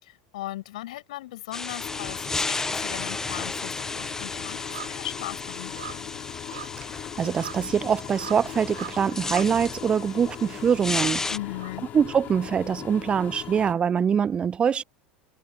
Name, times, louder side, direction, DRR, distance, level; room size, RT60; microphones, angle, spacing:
voice 1, 0.0-6.1 11.3-11.9, left 16 dB, 65° left, 5.4 m, -38 dB
sound 1, 1.5-11.4, left 3 dB, 10° left, 0.7 m, -34 dB
sound 2, 1.8-13.7, left 13 dB, 40° left, 2.7 m, -39 dB
sound 3, 1.8-2.5 2.8-12.8 13.1-13.2, right 11 dB, 70° right, 2.3 m, -45 dB
voice 2, 7.2-11.2 11.9-14.8, right 7 dB, 25° right, 0.4 m, -24 dB
figure-of-eight pair, 75°, 4 cm